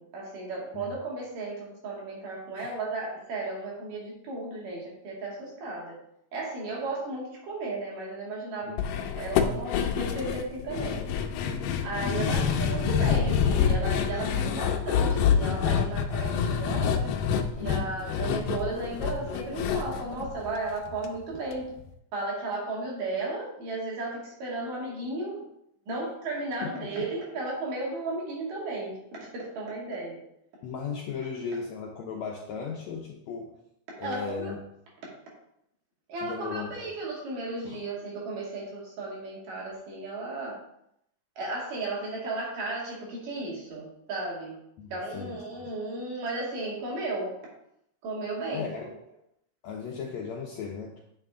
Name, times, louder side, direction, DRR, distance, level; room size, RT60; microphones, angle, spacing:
voice 1, 0.0-6.0 6.3-11.0 11.8-17.1 17.6-21.7 22.1-25.5 25.9-30.2 34.0-34.5 36.1-40.6 41.4-44.6 44.9-47.4 48.0-48.7, right 2 dB, 80° right, -4 dB, 4.1 m, -34 dB
sound 1, 8.8-21.1 21.3-21.4 21.8-21.9, left 7 dB, 90° left, 2.3 m, -27 dB
voice 2, 12.1-12.6 17.6-18.0 26.6-27.1 30.6-33.6 34.0-34.7 36.2-36.9 37.6-37.8 44.8-45.4 48.5-49.0 49.6-51.1, left 5 dB, 70° left, 0 dB, 1.8 m, -36 dB
9.2 x 6.5 x 3.7 m, 0.77 s
omnidirectional pair, 3.7 m